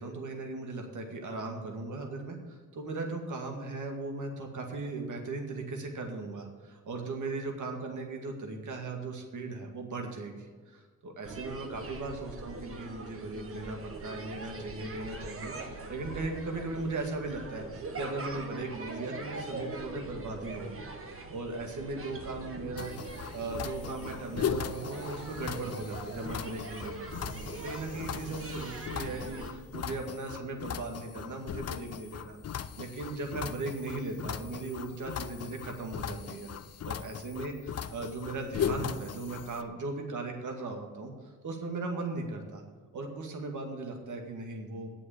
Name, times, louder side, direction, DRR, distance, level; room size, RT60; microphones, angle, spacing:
voice 1, 0.0-27.1 27.5-32.4 32.8-36.5 36.8-42.6 42.9-44.9, right 3 dB, 65° right, 3 dB, 2.2 m, -38 dB
sound 1, 11.2-29.5, right 3 dB, 40° right, 1.6 m, -42 dB
sound 2, 22.8-39.6, left 8 dB, 50° left, 0.7 m, -38 dB
8.6 x 7.0 x 8.4 m, 1.5 s
cardioid pair, 70°, 33 cm